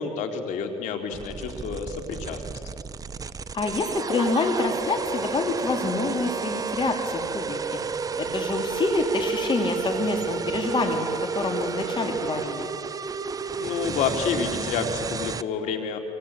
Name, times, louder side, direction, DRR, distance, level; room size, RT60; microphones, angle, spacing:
voice 1, 0.0-2.4 13.6-16.0, left 5 dB, 85° left, 5 dB, 3.1 m, -29 dB
sound 1, 1.1-15.4, right 6 dB, 30° right, 0.7 m, -32 dB
voice 2, 3.5-7.8 8.2-11.1 11.3-12.7, left 3 dB, 40° left, 4 dB, 3.5 m, -26 dB
27.5 x 24.0 x 8.8 m, 2.6 s
cardioid pair, 95°, 12 cm